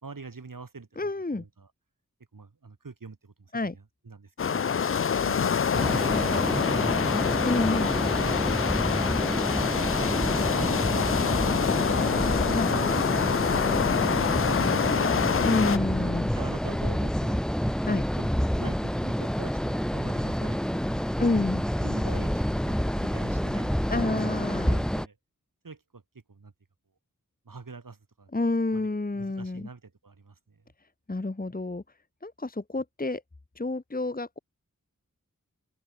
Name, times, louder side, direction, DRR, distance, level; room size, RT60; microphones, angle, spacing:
voice 1, 0.0-1.7 2.3-4.7 5.2-7.3 8.2-8.4 8.8-11.9 12.1-13.1 14.4-15.5 16.0-17.8 18.2-21.4 21.8-25.2 25.6-26.0 26.3-26.5 27.5-28.3 28.7-28.9 29.1-30.6, right 4 dB, 80° right, 4.1 m, -45 dB
voice 2, 1.0-1.4 3.5-3.7 7.4-7.9 12.5-12.7 15.4-16.3 17.8-18.0 21.2-21.7 23.9-24.8 28.3-29.7 31.1-31.8 32.2-33.2 33.6-34.4, left 2 dB, 25° left, 1.3 m, -28 dB
sound 1, 4.4-15.8, left 7 dB, 40° left, 0.4 m, -26 dB
sound 2, 5.7-25.1, equal, ahead, 0.9 m, -28 dB
wide cardioid pair, 65°, 32 cm